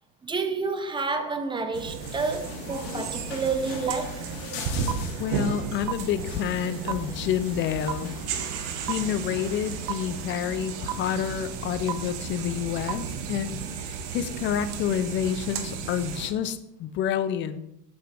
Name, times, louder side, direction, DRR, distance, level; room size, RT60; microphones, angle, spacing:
voice 1, 0.2-4.3, right 4 dB, 10° right, 0.7 m, -29 dB
sound 1, 1.7-16.3, right 6 dB, 50° right, 1.3 m, -34 dB
sound 2, 2.0-10.8, left 6 dB, 85° left, 2.2 m, -42 dB
sound 3, 3.9-4.0 4.9-5.0 5.9-6.0 6.9-7.0 7.9-8.0 8.9-9.0 9.9-10.0 10.9-11.0 11.9-12.0 12.9-13.0, right 14 dB, 85° right, 0.7 m, -28 dB
voice 2, 5.2-8.1 8.8-17.6, left 9 dB, 25° left, 0.3 m, -29 dB
8.1 x 7.8 x 3.3 m
supercardioid pair, 130°, 50 cm